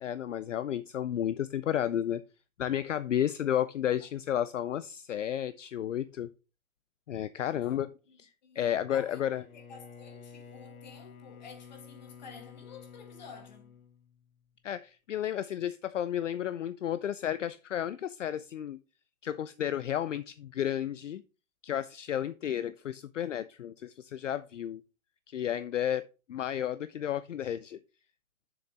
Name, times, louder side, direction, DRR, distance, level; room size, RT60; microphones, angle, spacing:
voice 1, 0.0-2.2 2.6-6.3 7.1-7.9 8.2-9.4 14.6-18.8 19.2-21.2 21.6-24.8 25.3-27.8, left 10 dB, 60° left, 0.5 m, -32 dB
voice 2, 7.4-7.8 8.1-8.2 8.4-9.2 9.5-13.8, left 5 dB, 30° left, 1.3 m, -51 dB
Bowed string instrument, 9.3-14.6, left 6 dB, 85° left, 1.4 m, -51 dB
7.1 x 6.6 x 3.4 m
hypercardioid pair, 175°, 42 cm